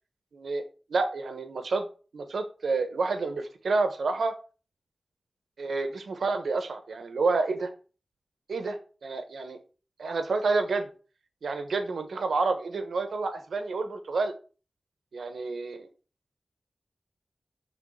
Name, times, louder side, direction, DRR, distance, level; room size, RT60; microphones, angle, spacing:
voice 1, 0.3-0.6 0.9-1.8 2.1-4.3 5.6-7.7 8.5-9.6 10.0-10.9 11.4-14.3 15.1-15.9, right 3 dB, 85° right, 7 dB, 1.1 m, -29 dB
6.3 x 3.9 x 5.6 m, 0.36 s
cardioid pair, 50°, 0 cm